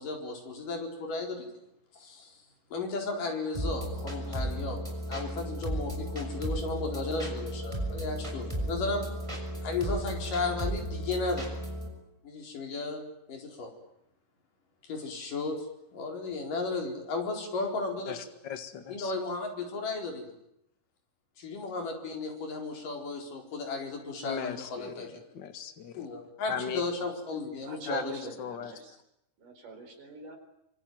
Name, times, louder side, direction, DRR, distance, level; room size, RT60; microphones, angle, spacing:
voice 1, 0.0-1.5 1.9-2.4 2.7-4.8 5.1-9.1 9.6-11.5 12.2-13.7 14.8-15.7 15.9-18.2 18.9-20.2 21.4-25.1 25.9-28.2, left 3 dB, 75° left, 2 dB, 6.1 m, -34 dB
sound 1, 3.5-11.9, right 1 dB, 10° right, 5.7 m, -34 dB
voice 2, 18.1-19.1 24.2-26.1 26.5-26.8 27.9-28.0 28.4-28.7, left 7 dB, 40° left, 8 dB, 2.1 m, -38 dB
voice 3, 27.6-29.0 29.4-30.4, right 4 dB, 75° right, 5 dB, 5.9 m, -43 dB
25.5 x 24.0 x 9.4 m, 0.82 s
omnidirectional pair, 3.8 m